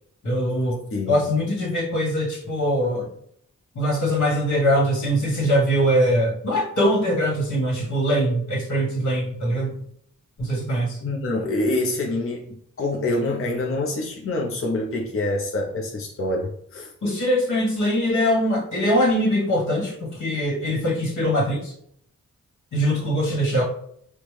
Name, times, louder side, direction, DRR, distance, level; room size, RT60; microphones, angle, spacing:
voice 1, 0.2-0.8 1.1-3.1 3.7-9.7 10.4-11.0 17.0-21.7 22.7-23.6, equal, 65° left, -2 dB, 1.4 m, -22 dB
voice 2, 0.9-1.2 11.0-12.5 12.8-16.9, left 2 dB, 45° left, 0 dB, 0.6 m, -26 dB
4.4 x 2.1 x 3.2 m, 0.68 s
cardioid pair, 50°, 32 cm